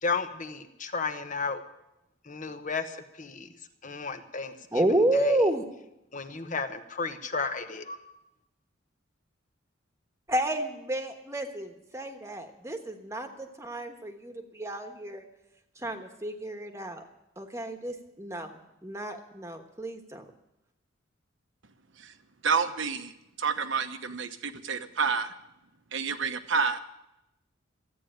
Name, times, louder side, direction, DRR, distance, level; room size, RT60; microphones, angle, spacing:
voice 1, 0.0-1.6 2.2-3.5 3.8-4.8 5.1-5.4 6.1-8.0, left 4 dB, 40° left, 8 dB, 1.1 m, -33 dB
voice 2, 4.7-5.6 10.3-15.3 15.8-17.1 17.4-20.3, right 1 dB, 15° right, 5 dB, 1.3 m, -31 dB
voice 3, 22.4-23.1 23.4-25.3 25.9-26.8, right 5 dB, 70° right, 9 dB, 1.0 m, -29 dB
14.0 x 9.2 x 8.8 m, 0.89 s
head